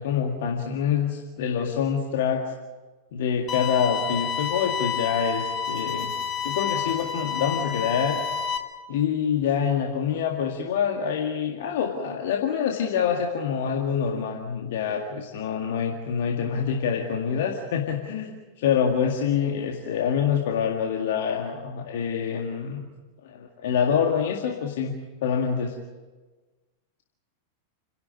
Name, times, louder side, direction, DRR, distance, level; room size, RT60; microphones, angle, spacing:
voice 1, 0.0-2.5 3.1-6.1 6.4-8.2 8.9-22.8 23.2-25.8, left 7 dB, 55° left, 2 dB, 2.0 m, -26 dB
sound 1, 3.5-8.6, left 7 dB, 30° left, 2.4 m, -29 dB
30.0 x 12.0 x 9.3 m, 1.3 s
figure-of-eight pair, 90°, 0 cm